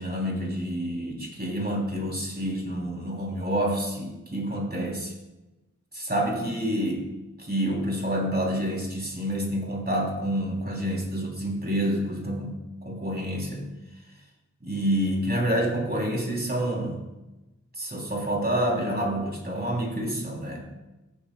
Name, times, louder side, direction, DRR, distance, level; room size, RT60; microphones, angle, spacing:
voice 1, 0.0-5.1 5.9-7.1 7.4-13.7 14.6-17.0 17.7-20.7, equal, 30° right, -2 dB, 3.1 m, -28 dB
14.5 x 9.3 x 2.2 m, 0.99 s
wide cardioid pair, 40°, 31 cm